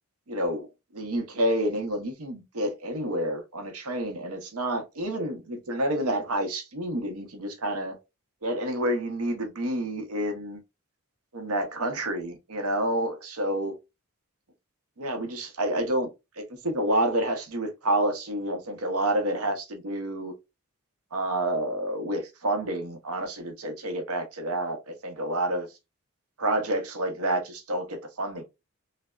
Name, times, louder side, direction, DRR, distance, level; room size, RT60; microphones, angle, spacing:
voice 1, 0.3-0.7 0.9-8.0 8.4-10.6 11.3-13.7 15.0-16.1 16.4-20.3 21.1-25.7 26.4-28.4, right 1 dB, 80° right, 0.7 m, -29 dB
3.2 x 2.0 x 2.3 m
head